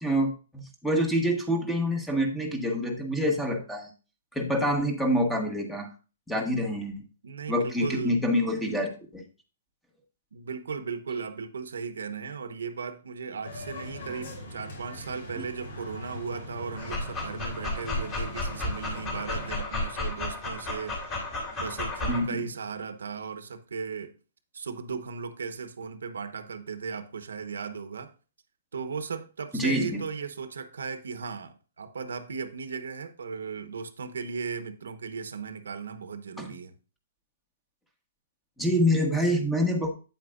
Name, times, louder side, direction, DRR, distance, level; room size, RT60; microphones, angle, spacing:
voice 1, 0.0-3.9 4.3-5.9 6.3-7.0 7.5-9.2 15.4-15.5 22.1-22.4 29.5-30.0 36.4-36.5 38.6-39.9, equal, 5° left, 1.2 m, -26 dB
voice 2, 7.2-8.2 10.3-21.2 21.6-24.1 24.5-28.1 28.7-36.7, right 5 dB, 90° right, 1.0 m, -36 dB
sound 1, 13.4-19.5, left 1 dB, 65° left, 4.2 m, -41 dB
Dog, 16.8-22.2, left 2 dB, 25° left, 2.9 m, -33 dB
8.8 x 8.0 x 2.5 m
hypercardioid pair, 155°, 0 cm